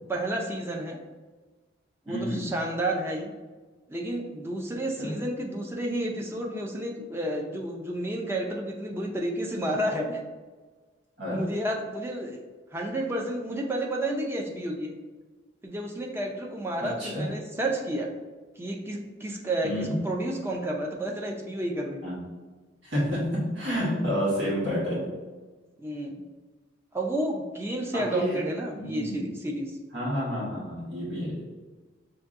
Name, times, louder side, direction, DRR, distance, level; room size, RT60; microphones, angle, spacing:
voice 1, 0.1-1.0 2.1-3.3 3.9-10.2 11.3-12.4 12.7-15.0 15.6-18.1 18.6-22.0 25.8-26.2 26.9-29.8, right 1 dB, 15° right, 0 dB, 0.5 m, -31 dB
voice 2, 2.1-2.4 5.0-5.2 11.2-11.4 16.8-17.3 19.6-20.0 22.0-22.2 22.8-25.1 27.9-28.4 28.7-29.2 29.9-31.4, equal, 75° right, -7 dB, 1.5 m, -29 dB
5.7 x 2.6 x 2.5 m, 1.3 s
head